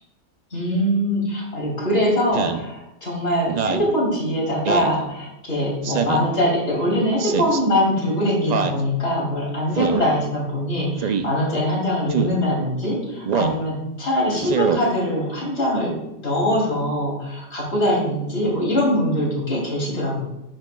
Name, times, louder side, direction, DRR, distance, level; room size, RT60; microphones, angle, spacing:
voice 1, 0.5-15.9 16.2-20.2, equal, 55° left, -4 dB, 3.1 m, -22 dB
Speech synthesizer, 2.3-2.6 3.5-3.9 4.6-4.9 5.8-6.3 7.2-7.6 8.5-8.8 9.7-10.1 11.0-11.3 12.1-12.4 13.3-13.6 14.4-14.8, right 7 dB, 65° right, 0.4 m, -24 dB
9.8 x 7.4 x 2.3 m, 0.89 s
omnidirectional pair, 1.3 m